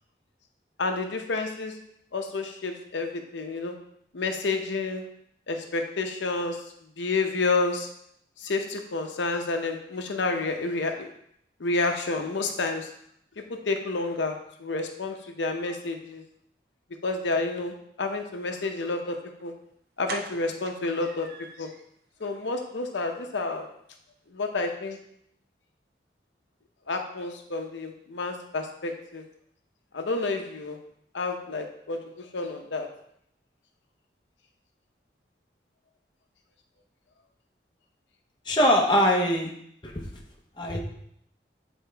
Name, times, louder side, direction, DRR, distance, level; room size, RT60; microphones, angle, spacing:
voice 1, 0.8-1.7 2.1-3.7 4.1-5.1 5.5-6.6 7.0-7.9 8.4-11.1 11.6-12.9 13.7-14.3 14.6-16.2 17.0-19.5 20.0-21.3 21.6-21.7 22.2-23.7 24.3-25.0 26.9-29.2 29.9-30.8 31.1-32.9, left 3 dB, 85° left, 4 dB, 0.7 m, -29 dB
sound 1, 19.4-19.5 20.1-21.8 22.2-22.3 22.7-22.8 23.1-23.2, right 4 dB, 55° right, 0.5 m, -40 dB
voice 2, 38.5-39.5 39.8-40.0 40.6-40.8, equal, 25° left, 0 dB, 0.8 m, -22 dB
8.2 x 4.3 x 3.4 m, 0.71 s
head